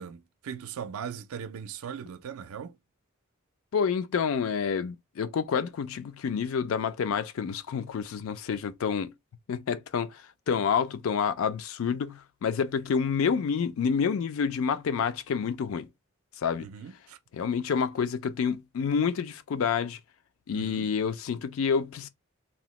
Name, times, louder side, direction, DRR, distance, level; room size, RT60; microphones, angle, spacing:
voice 1, 0.0-2.8 16.6-17.2 20.5-20.9, right 7 dB, 85° right, 0.4 m, -39 dB
voice 2, 3.7-9.1 9.5-15.9 16.4-16.7 17.3-20.0 20.5-22.1, left 6 dB, 70° left, 0.4 m, -28 dB
2.9 x 2.0 x 3.0 m
head